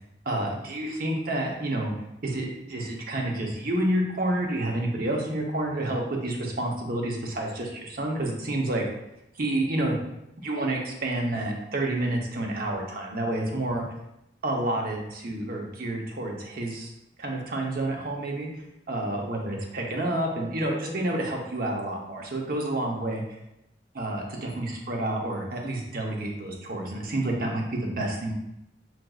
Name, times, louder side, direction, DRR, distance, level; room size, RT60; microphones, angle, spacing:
voice 1, 0.3-1.9 2.2-8.8 9.4-10.0 10.4-13.8 14.4-16.9 17.2-18.5 18.9-23.2 23.9-28.3, right 1 dB, 55° right, 0 dB, 0.8 m, -29 dB
5.9 x 2.5 x 2.3 m, 0.85 s
head